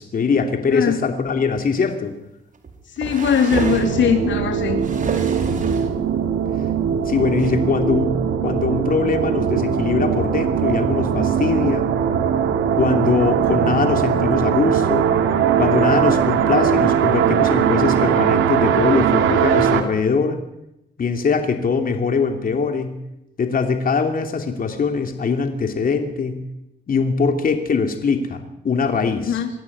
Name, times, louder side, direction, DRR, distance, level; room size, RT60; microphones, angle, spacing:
voice 1, 0.0-2.1 7.0-8.2 8.4-11.9 12.8-15.1 15.6-20.4 21.0-23.0 23.4-26.4 26.9-29.4, left 5 dB, 45° left, 5 dB, 2.9 m, -22 dB
sound 1, 1.5-1.6 2.6-4.0 4.6-5.9 6.9-7.0 7.4-7.5, right 4 dB, 40° right, 4.8 m, -29 dB
voice 2, 3.0-4.8 5.2-5.3 29.3-29.5, left 7 dB, 70° left, 6 dB, 3.3 m, -20 dB
sound 2, 3.5-19.8, right 8 dB, 85° right, 2.8 m, -20 dB
24.0 x 16.0 x 9.9 m, 0.86 s
cardioid pair, 90°, 20 cm